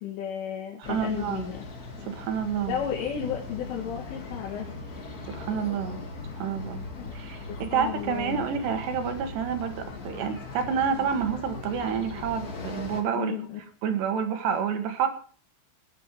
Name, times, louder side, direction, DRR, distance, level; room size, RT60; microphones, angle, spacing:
voice 1, 0.0-1.6 2.7-4.7 7.0-7.2 7.5-8.4 13.2-13.6, left 8 dB, 90° left, -2 dB, 4.6 m, -33 dB
sound 1, 0.8-13.0, left 3 dB, 70° left, 0.8 m, -39 dB
voice 2, 0.8-1.5 2.0-2.8 5.3-6.0 6.4-6.8 7.1-13.3 13.8-15.1, right 7 dB, 70° right, 7 dB, 3.7 m, -29 dB
20.5 x 8.6 x 4.7 m, 0.42 s
omnidirectional pair, 5.4 m